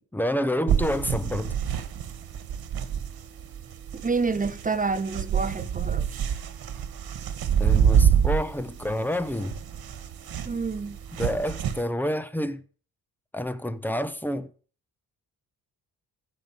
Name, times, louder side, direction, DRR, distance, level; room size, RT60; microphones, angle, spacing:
voice 1, 0.1-1.6 7.6-9.6 11.2-12.6 13.3-14.5, equal, 5° left, 0.9 m, -28 dB
sound 1, 0.7-11.8, right 8 dB, 75° right, 1.7 m, -27 dB
voice 2, 3.9-6.3 10.5-11.0, right 4 dB, 20° right, 0.9 m, -28 dB
15.0 x 5.4 x 9.2 m
cardioid pair, 125°, 37 cm